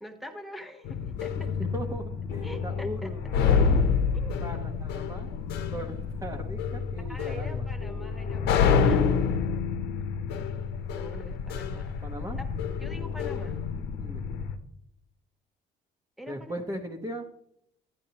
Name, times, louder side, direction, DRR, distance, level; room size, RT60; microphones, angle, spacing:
voice 1, 0.0-1.5 2.4-3.1 4.1-4.3 7.0-9.4 10.9-12.0 12.3-12.5 12.8-13.6 16.2-16.7, equal, ahead, 5 dB, 1.3 m, -44 dB
sound 1, 0.8-14.5, left 6 dB, 85° left, 0.8 m, -28 dB
voice 2, 1.3-3.8 4.4-5.3 5.7-7.7 12.0-12.4 14.0-14.2 16.3-17.3, right 1 dB, 20° right, 1 dB, 1.0 m, -38 dB
11.5 x 8.9 x 2.9 m, 0.75 s
cardioid pair, 110°, 17 cm